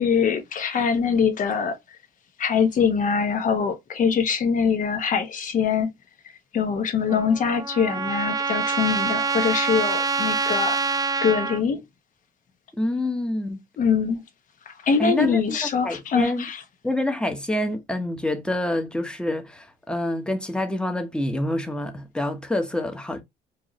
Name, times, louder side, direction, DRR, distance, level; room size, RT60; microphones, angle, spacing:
voice 1, 0.0-1.8 2.4-5.9 6.5-10.8 11.2-11.8 13.8-14.2 14.8-16.6, left 6 dB, 50° left, 1.2 m, -23 dB
Trumpet, 7.1-11.6, right 5 dB, 20° right, 0.5 m, -25 dB
voice 2, 12.8-13.6 15.0-15.6 15.8-16.4 16.8-23.2, left 1 dB, 5° left, 1.0 m, -27 dB
4.6 x 2.6 x 3.0 m
cardioid pair, 110°, 17 cm